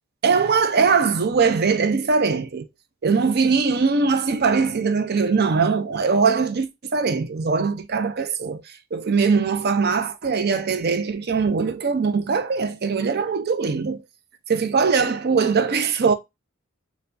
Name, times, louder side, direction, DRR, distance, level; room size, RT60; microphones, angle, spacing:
voice 1, 0.2-2.7 3.0-14.0 14.5-16.1, right 5 dB, 50° right, 0.5 m, -21 dB
6.7 x 2.3 x 2.5 m
head